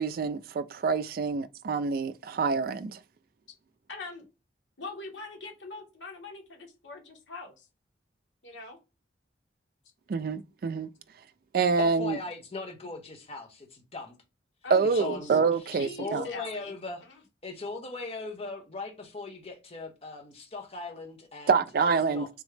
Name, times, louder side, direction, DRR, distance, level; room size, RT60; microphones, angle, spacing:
voice 1, 0.0-3.0 10.1-10.9 11.5-12.2 14.7-16.3 21.5-22.3, right 5 dB, 50° right, 0.3 m, -26 dB
voice 2, 3.9-4.2 4.8-7.7 8.4-8.8 14.6-15.4 15.7-16.7 17.0-17.2, left 3 dB, 80° left, 1.6 m, -42 dB
voice 3, 11.8-14.1 15.0-15.4 16.0-17.0 17.4-21.6 22.1-22.3, left 3 dB, 30° left, 1.0 m, -39 dB
3.5 x 3.0 x 3.2 m
head